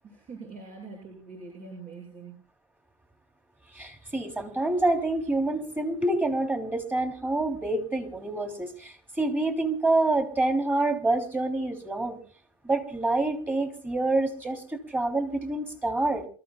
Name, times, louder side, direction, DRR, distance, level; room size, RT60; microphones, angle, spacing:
voice 1, 0.0-2.4, right 4 dB, 50° right, -2 dB, 7.9 m, -43 dB
voice 2, 3.7-12.2 12.6-16.3, right 2 dB, 10° right, 5 dB, 3.2 m, -27 dB
28.0 x 14.0 x 2.4 m, 0.43 s
supercardioid pair, 100°, 18 cm